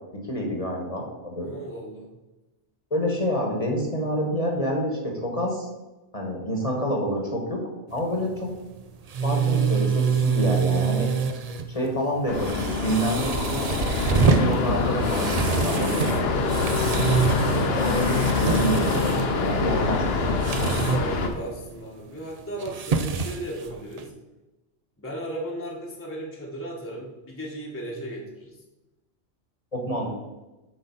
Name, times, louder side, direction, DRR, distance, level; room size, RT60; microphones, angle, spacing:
voice 1, 0.2-1.5 2.9-5.7 6.1-7.6 7.9-8.5 9.2-11.1 11.7-13.6 14.1-16.5 16.9-17.2 17.4-20.3 29.7-30.1, equal, 30° left, 0 dB, 1.3 m, -28 dB
voice 2, 1.4-2.1 20.9-24.1 25.0-28.6, right 1 dB, 10° left, -3 dB, 1.1 m, -36 dB
sound 1, 7.9-24.1, right 6 dB, 55° right, 0.4 m, -27 dB
sound 2, 12.3-21.3, left 3 dB, 60° left, 1.0 m, -25 dB
7.8 x 3.8 x 5.5 m, 1.1 s
omnidirectional pair, 1.2 m